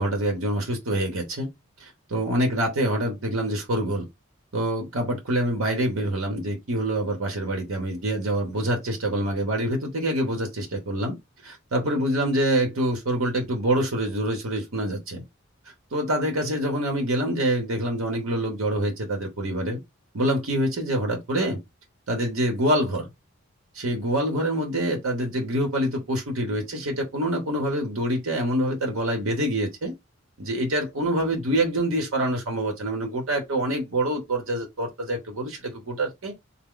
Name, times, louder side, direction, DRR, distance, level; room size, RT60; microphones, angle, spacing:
voice 1, 0.0-1.5 1.8-4.1 4.5-11.2 11.4-15.2 15.9-19.8 20.1-21.6 22.1-23.1 23.7-29.9 30.4-36.3, right 1 dB, 85° right, 0.9 m, -26 dB
3.5 x 2.1 x 3.7 m
head